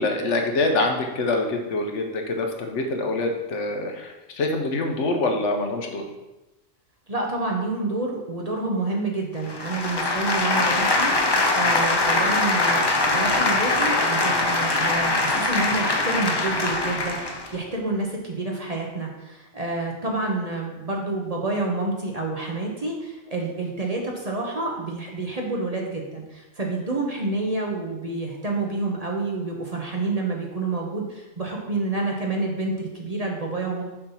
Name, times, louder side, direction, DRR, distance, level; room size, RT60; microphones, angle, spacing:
voice 1, 0.0-6.0, left 2 dB, 75° left, 3 dB, 1.1 m, -25 dB
voice 2, 7.1-33.8, right 2 dB, 35° right, 0 dB, 0.8 m, -28 dB
sound 1, 9.5-17.5, left 2 dB, 40° left, 0.3 m, -22 dB
6.7 x 2.8 x 5.5 m, 1.0 s
omnidirectional pair, 1.3 m